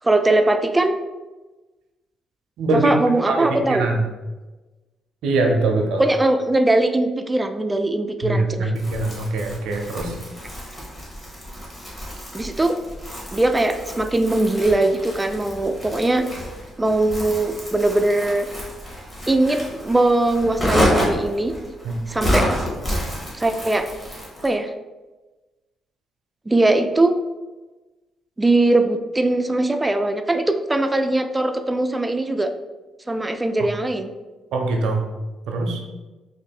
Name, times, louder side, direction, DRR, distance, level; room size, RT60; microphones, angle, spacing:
voice 1, 0.0-1.0 2.8-3.9 6.0-8.7 12.3-12.8 13.3-16.3 16.8-18.5 19.3-21.5 22.1-22.5 23.3-23.9 24.4-24.7 26.5-27.1 28.4-32.5 33.1-34.1, right 2 dB, 15° right, 7 dB, 0.3 m, -20 dB
voice 2, 2.6-2.9 3.3-4.1 5.2-6.0 8.2-10.2 21.8-22.0 34.5-35.1 35.5-35.8, right 2 dB, 80° right, 2 dB, 0.5 m, -22 dB
Crumpling crinkling, 8.7-24.5, equal, 20° left, 1.5 m, -29 dB
3.0 x 2.5 x 4.3 m, 1.2 s
cardioid pair, 90°, 0 cm